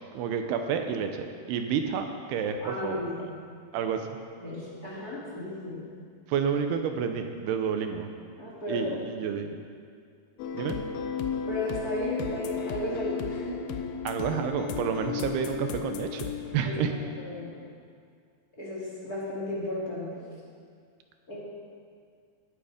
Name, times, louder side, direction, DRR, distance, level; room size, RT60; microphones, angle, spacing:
voice 1, 0.1-3.0 3.7-4.1 6.3-8.1 8.7-9.6 10.5-10.8 14.0-16.9, right 7 dB, 80° right, 6 dB, 2.8 m, -30 dB
voice 2, 2.6-3.3 4.4-5.8 8.4-8.9 11.5-13.6 16.6-17.5 18.6-20.2 21.3-21.4, left 1 dB, 25° left, -7 dB, 3.0 m, -34 dB
sound 1, 10.4-17.7, left 7 dB, 75° left, 2.5 m, -35 dB
19.0 x 9.3 x 5.1 m, 2.2 s
omnidirectional pair, 4.7 m